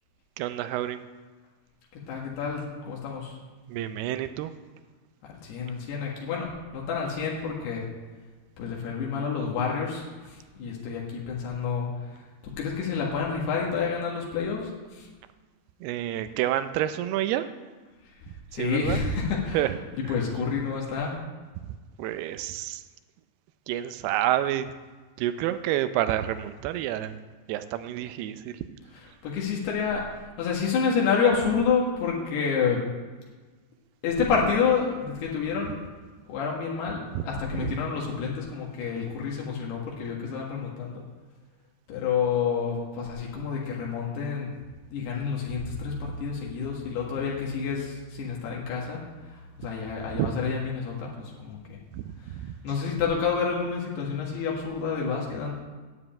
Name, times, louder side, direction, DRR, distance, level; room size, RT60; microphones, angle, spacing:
voice 1, 0.4-1.1 3.7-4.5 15.8-17.5 18.5-19.0 19.5-19.8 20.0-20.1 22.0-22.8 23.7-24.7 25.2-27.2 27.5-28.6 37.1-37.2 37.5-37.8 50.1-50.3 51.9-52.6, right 12 dB, 90° right, 11 dB, 2.7 m, -29 dB
voice 2, 1.9-3.4 5.4-7.9 8.6-12.2 12.4-15.1 18.5-19.6 20.1-21.1 29.2-30.0 30.4-32.8 34.0-35.8 36.3-41.0 41.9-44.5 44.9-49.0 49.6-51.8 52.6-55.5, left 6 dB, 90° left, -3 dB, 3.7 m, -29 dB
9.6 x 8.0 x 8.7 m, 1.3 s
omnidirectional pair, 4.5 m